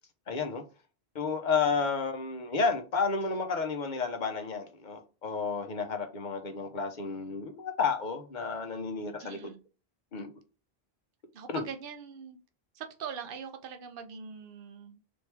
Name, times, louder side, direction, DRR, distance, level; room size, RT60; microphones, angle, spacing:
voice 1, 0.3-0.6 1.1-9.5 10.1-10.3 11.5-11.6, left 4 dB, 50° left, 0.9 m, -31 dB
voice 2, 9.2-9.6 11.3-12.4 12.7-15.0, right 7 dB, 60° right, 0.9 m, -42 dB
4.3 x 3.1 x 3.4 m
omnidirectional pair, 1.1 m